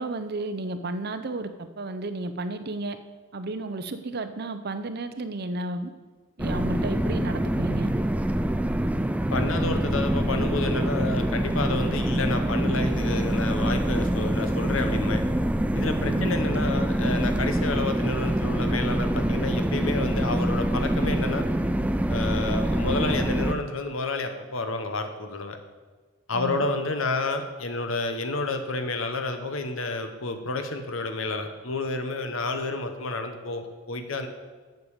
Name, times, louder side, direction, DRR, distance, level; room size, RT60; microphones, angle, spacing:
voice 1, 0.0-3.0 3.3-5.9 6.4-7.9 16.0-16.4 26.3-26.7, right 2 dB, 50° right, 10 dB, 0.6 m, -32 dB
sound 1, 6.4-23.5, right 1 dB, 5° right, 0.3 m, -25 dB
voice 2, 9.3-15.2 15.7-21.5 22.1-25.6 26.3-34.3, left 3 dB, 75° left, 7 dB, 1.1 m, -30 dB
7.9 x 6.7 x 7.3 m, 1.4 s
head